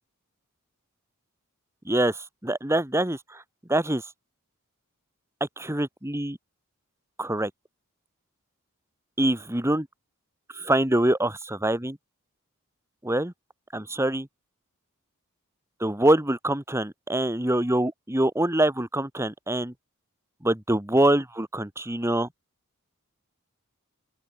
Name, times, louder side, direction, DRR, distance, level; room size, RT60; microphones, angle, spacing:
voice 1, 1.9-3.4 3.7-4.0 5.4-6.4 7.2-7.5 9.2-9.9 10.5-12.0 13.0-13.3 13.7-14.3 15.8-19.7 20.4-22.3, right 1 dB, 15° right, 1.7 m, -24 dB
open air
head